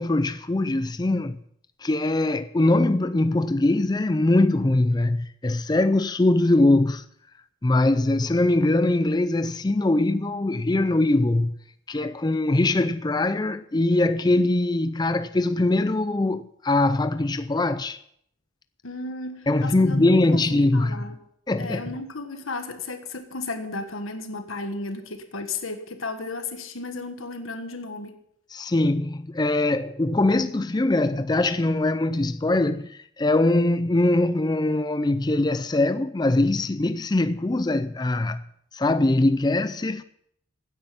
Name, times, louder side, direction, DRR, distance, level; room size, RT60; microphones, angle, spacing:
voice 1, 0.0-1.4 1.8-7.0 7.6-11.5 11.9-18.0 19.5-21.0 21.5-21.9 28.5-38.4 38.7-40.0, left 2 dB, 20° left, 0.4 m, -22 dB
voice 2, 18.8-21.2 21.6-28.2, left 3 dB, 85° left, 1.6 m, -34 dB
16.0 x 9.4 x 5.7 m
head